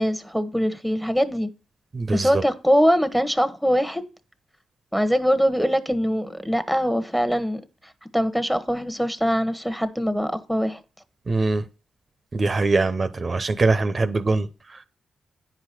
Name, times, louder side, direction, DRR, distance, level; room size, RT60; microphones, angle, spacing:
voice 1, 0.0-1.5 2.1-4.0 4.9-7.6 8.1-10.8, equal, ahead, 1.2 m, -22 dB
voice 2, 1.9-2.4 11.3-11.7 12.3-14.8, right 3 dB, 40° right, 0.8 m, -23 dB
9.4 x 4.9 x 5.9 m
cardioid pair, 65°, 0 cm